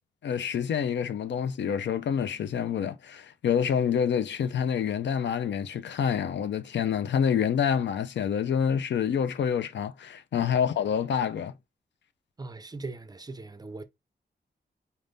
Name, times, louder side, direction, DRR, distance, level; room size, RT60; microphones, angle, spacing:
voice 1, 0.2-11.5, left 8 dB, 90° left, 0.4 m, -27 dB
voice 2, 12.4-13.8, right 3 dB, 20° right, 0.4 m, -39 dB
4.1 x 3.4 x 2.6 m
wide cardioid pair, 135°, 18 cm